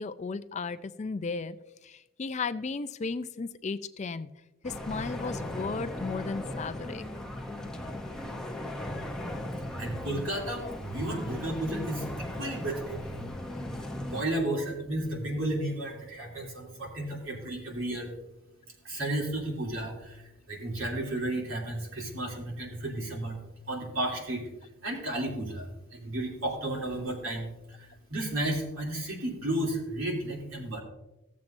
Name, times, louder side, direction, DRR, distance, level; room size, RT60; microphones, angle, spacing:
voice 1, 0.0-1.6 1.8-4.3 4.6-7.0, left 4 dB, 35° left, 12 dB, 0.4 m, -35 dB
sound 1, 4.6-14.2, left 1 dB, 5° left, 0.7 m, -37 dB
voice 2, 9.8-13.2 13.8-18.1 18.8-23.4 23.7-24.5 24.8-30.8, right 1 dB, 70° right, -2 dB, 2.9 m, -33 dB
16.0 x 7.3 x 2.6 m, 0.98 s
head